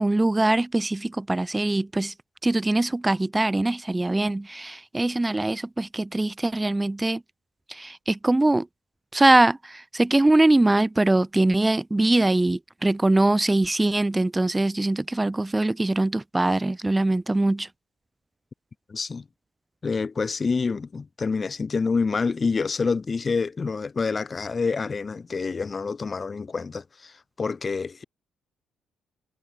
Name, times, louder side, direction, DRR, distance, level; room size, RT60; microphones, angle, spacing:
voice 1, 0.0-2.1 2.4-7.2 7.7-8.7 9.1-17.7, right 2 dB, 15° right, 1.0 m, -22 dB
voice 2, 18.9-19.3 19.8-28.0, left 4 dB, 35° left, 5.1 m, -27 dB
cardioid pair, 90°, 0 cm